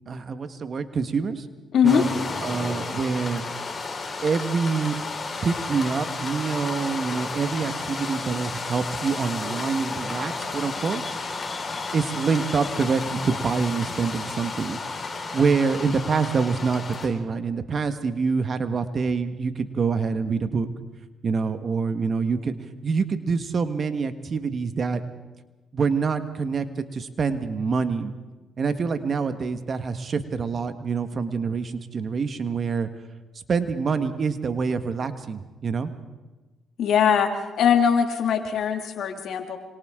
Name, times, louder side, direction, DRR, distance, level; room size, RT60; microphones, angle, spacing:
voice 1, 0.1-1.4 1.8-2.1 2.4-3.4 4.2-5.0 5.4-11.0 11.7-20.7 21.2-22.6 22.8-25.0 25.7-28.1 28.6-32.9 33.3-35.9, right 5 dB, 50° right, 10 dB, 1.6 m, -26 dB
voice 2, 1.7-2.0 36.8-37.3 37.6-39.6, left 8 dB, 70° left, 5 dB, 2.3 m, -21 dB
sound 1, 1.9-17.1, left 3 dB, 35° left, 5.1 m, -32 dB
26.5 x 25.5 x 3.8 m, 1.2 s
supercardioid pair, 55°, 0 cm